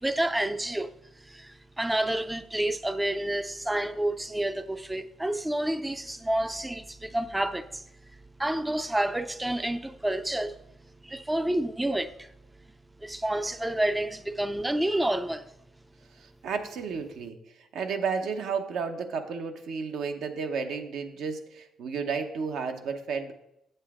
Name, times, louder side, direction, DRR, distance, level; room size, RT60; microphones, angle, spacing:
voice 1, 0.0-7.8 8.4-10.6 11.0-12.3 13.0-15.5, right 1 dB, 10° right, 0.4 m, -29 dB
voice 2, 16.1-23.3, right 5 dB, 75° right, 1.0 m, -32 dB
8.0 x 7.9 x 3.6 m
cardioid pair, 90°, 0 cm